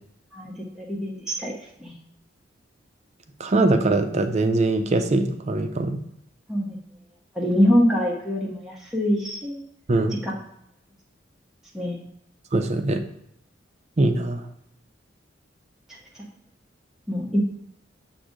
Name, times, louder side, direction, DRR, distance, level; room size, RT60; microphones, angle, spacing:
voice 1, 0.3-1.5 1.8-1.9 6.5-6.8 7.3-9.6 10.2-10.4 11.7-12.0 17.1-17.4, equal, 5° right, -4 dB, 0.7 m, -24 dB
voice 2, 3.4-6.0 9.9-10.2 12.5-13.0 14.0-14.4, right 2 dB, 35° right, 7 dB, 0.5 m, -22 dB
7.4 x 2.6 x 4.9 m, 0.77 s
head